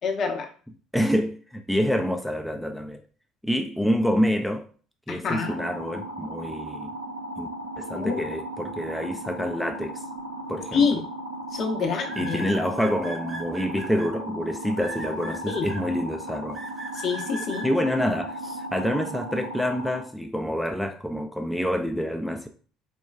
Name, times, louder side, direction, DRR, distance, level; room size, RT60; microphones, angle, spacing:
voice 1, 0.0-0.5 5.1-5.5 8.0-8.2 10.7-11.0 11.5-12.4 15.5-15.7 17.0-17.7, left 5 dB, 45° left, 0.7 m, -26 dB
voice 2, 0.9-3.0 3.4-4.7 5.1-6.9 7.4-7.5 7.8-10.0 10.5-10.9 12.2-16.6 17.6-22.5, equal, ahead, 0.4 m, -27 dB
sound 1, 5.3-20.0, right 1 dB, 85° right, 0.6 m, -36 dB
sound 2, 10.6-10.9 12.1-14.1 14.8-15.8 16.5-17.6, right 1 dB, 25° right, 0.8 m, -38 dB
4.2 x 2.2 x 2.4 m
figure-of-eight pair, 60°, 0 cm